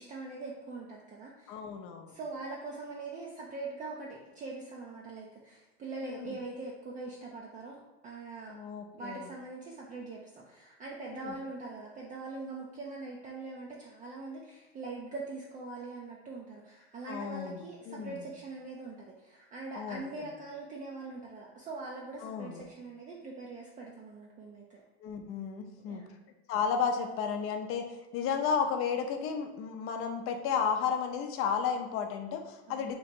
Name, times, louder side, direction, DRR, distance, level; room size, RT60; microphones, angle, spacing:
voice 1, 0.0-1.6 2.1-8.5 8.9-24.8 25.9-26.2 32.7-32.9, right 3 dB, 25° right, -2 dB, 0.4 m, -42 dB
voice 2, 1.5-2.1 6.0-6.4 8.5-9.3 11.1-11.3 17.1-18.3 19.8-20.0 22.2-22.6 25.0-26.1 26.5-27.9 28.1-32.9, left 6 dB, 45° left, 5 dB, 0.6 m, -33 dB
3.0 x 2.4 x 4.3 m, 1.1 s
supercardioid pair, 120°, 30 cm